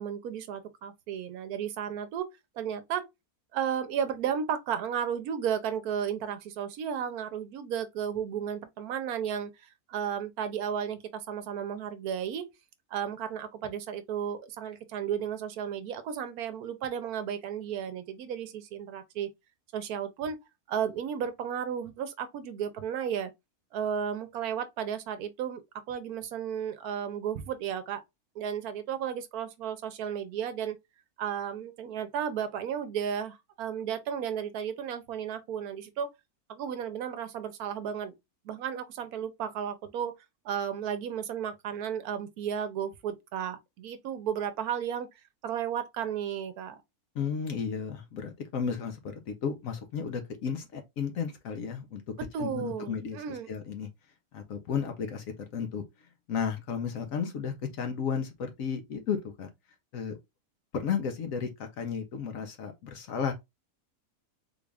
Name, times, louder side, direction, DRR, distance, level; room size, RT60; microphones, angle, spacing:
voice 1, 0.0-2.3 2.6-3.1 3.5-12.5 12.9-19.3 19.7-20.4 20.7-23.3 23.7-25.6 25.9-28.0 28.4-30.8 31.2-36.1 36.5-38.1 38.4-40.1 40.4-45.1 45.4-46.8 52.2-53.5, right 8 dB, 80° right, 1.1 m, -33 dB
voice 2, 47.1-52.0 52.4-53.9 54.3-55.8 56.3-59.5 59.9-60.2 60.7-63.3, left 6 dB, 65° left, 1.0 m, -33 dB
3.8 x 2.4 x 3.2 m
omnidirectional pair, 1.6 m